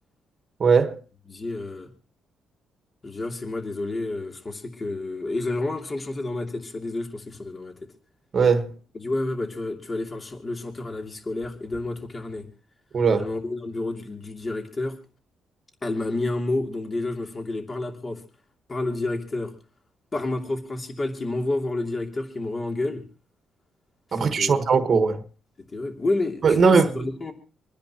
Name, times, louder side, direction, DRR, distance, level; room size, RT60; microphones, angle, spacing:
voice 1, 0.6-1.0 8.3-8.7 12.9-13.3 24.1-25.2 26.4-26.9, right 5 dB, 45° right, 1.4 m, -19 dB
voice 2, 1.3-1.9 3.0-7.7 8.9-12.5 13.2-15.0 15.8-18.2 18.7-19.5 20.1-23.0 24.1-24.6 25.7-27.3, left 2 dB, 30° left, 2.8 m, -29 dB
26.5 x 10.5 x 2.9 m
cardioid pair, 90°, 0 cm